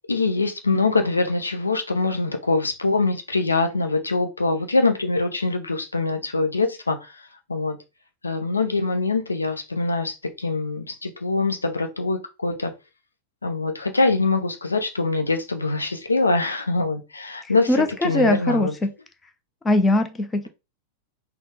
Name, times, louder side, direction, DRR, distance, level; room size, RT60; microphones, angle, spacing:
voice 1, 0.1-7.2 7.5-7.8 8.2-12.7 13.4-18.7, left 3 dB, 80° left, 0.7 m, -23 dB
voice 2, 17.7-18.9 19.6-20.5, left 2 dB, 15° left, 0.6 m, -21 dB
4.0 x 2.2 x 3.6 m
figure-of-eight pair, 90°, 0 cm